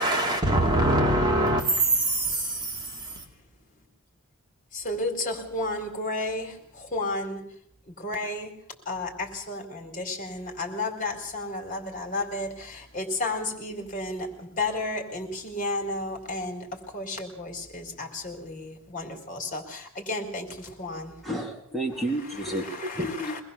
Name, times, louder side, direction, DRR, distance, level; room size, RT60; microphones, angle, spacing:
voice 1, 0.0-3.2, right 1 dB, 20° right, 3.1 m, -24 dB
voice 2, 4.7-7.4 7.9-8.5 8.9-21.2 22.7-23.4, left 2 dB, 40° left, 4.2 m, -32 dB
voice 3, 20.9-23.4, right 1 dB, ahead, 3.6 m, -31 dB
24.0 x 20.5 x 6.9 m
head